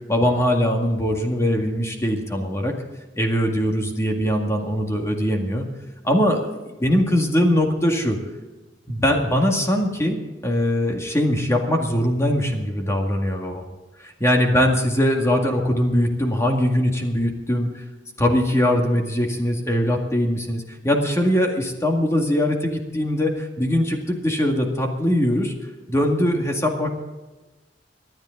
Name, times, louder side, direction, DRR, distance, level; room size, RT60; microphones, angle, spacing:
voice 1, 0.1-2.7 3.2-5.6 6.0-8.2 8.9-13.6 14.0-17.8 18.2-25.5 25.9-26.9, equal, 15° left, 2 dB, 2.0 m, -21 dB
25.0 x 10.5 x 3.9 m, 1.2 s
head